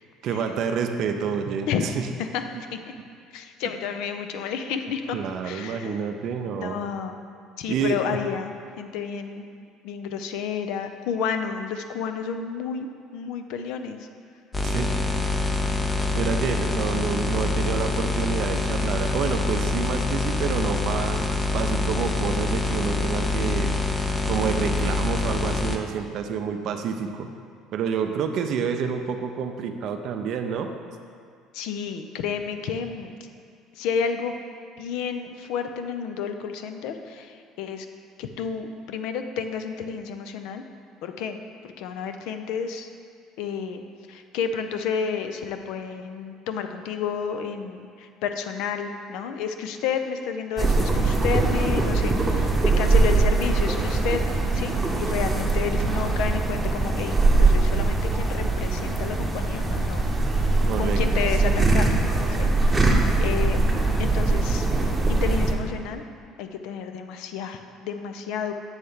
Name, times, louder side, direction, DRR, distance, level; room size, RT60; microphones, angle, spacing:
voice 1, 0.2-1.7 1.9-2.1 5.1-6.8 7.7-8.2 14.6-15.3 16.1-23.7 24.3-27.3 27.7-30.7 60.7-61.6, right 6 dB, 60° right, 6 dB, 0.5 m, -28 dB
voice 2, 1.7-2.4 2.7-2.8 3.3-5.2 5.4-6.0 6.4-7.2 7.6-9.5 9.8-12.9 13.1-14.1 31.5-33.1 33.8-34.4 34.8-37.9 38.2-40.6 41.0-41.4 41.6-42.9 43.4-43.8 44.1-60.1 60.8-61.9 62.3-64.7 65.1-66.0 66.4-68.5, left 6 dB, 75° left, 7 dB, 0.5 m, -31 dB
sound 1, 14.5-25.8, left 2 dB, 20° left, 0.5 m, -25 dB
sound 2, 50.6-65.5, right 3 dB, 10° right, 0.9 m, -22 dB
7.8 x 3.2 x 5.6 m, 2.2 s
supercardioid pair, 100°, 0 cm